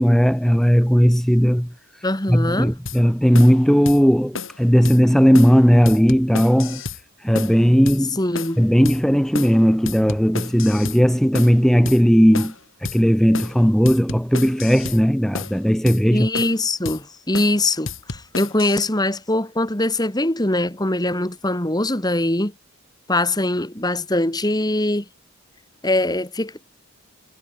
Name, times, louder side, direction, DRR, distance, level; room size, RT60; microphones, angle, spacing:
voice 1, 0.0-6.8 7.2-8.2 8.6-12.5 12.8-16.3, equal, ahead, 1.3 m, -16 dB
voice 2, 2.0-2.7 8.1-8.6 16.1-22.5 23.1-25.1 25.8-26.7, left 1 dB, 20° left, 2.1 m, -22 dB
sound 1, 2.9-3.0 3.3-3.6 3.9-4.0 4.3-4.6 4.8-5.0 5.3-5.6 5.9-7.0 7.3-7.6 7.9-8.0 8.3-8.6 8.9-9.0 9.3-9.6 9.9-11.0 11.3-11.6 11.9-12.0 12.3-12.6 12.8-13.0 13.3-13.6 13.9-15.0 15.3-15.6 15.9-16.0 16.3-16.6 16.9-17.0 17.3-17.6 17.9-18.9, left 4 dB, 60° left, 3.5 m, -31 dB
head